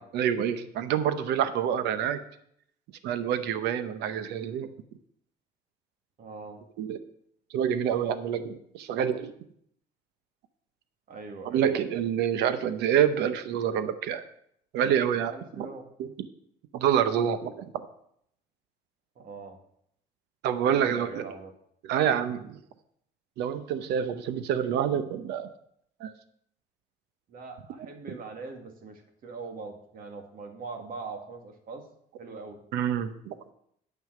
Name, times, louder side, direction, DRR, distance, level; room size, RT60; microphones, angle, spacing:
voice 1, 0.1-2.2 3.0-4.7 6.8-7.0 7.5-9.3 11.4-14.2 14.7-15.7 16.0-16.1 16.7-17.7 20.4-21.2 21.8-22.6 23.4-25.5 26.0-26.1 32.7-33.4, right 9 dB, 85° right, 11 dB, 0.8 m, -27 dB
voice 2, 6.2-6.6 11.1-11.7 15.3-15.8 19.2-19.6 20.6-21.5 27.3-31.9 32.2-32.6, right 4 dB, 60° right, 4 dB, 2.0 m, -41 dB
9.3 x 5.6 x 7.5 m, 0.70 s
cardioid pair, 110°, 17 cm